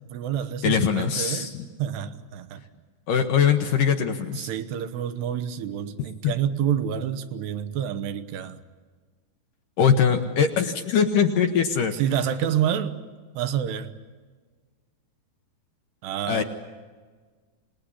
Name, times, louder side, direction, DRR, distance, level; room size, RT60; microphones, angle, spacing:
voice 1, 0.1-1.5 1.8-2.6 4.4-8.6 11.9-13.0 13.3-13.9 16.0-16.4, right 9 dB, 80° right, 10 dB, 3.2 m, -28 dB
voice 2, 0.6-1.6 3.1-4.5 6.2-6.3 9.8-11.9 16.3-16.4, left 7 dB, 70° left, 6 dB, 2.3 m, -22 dB
26.5 x 19.5 x 9.9 m, 1.5 s
omnidirectional pair, 4.9 m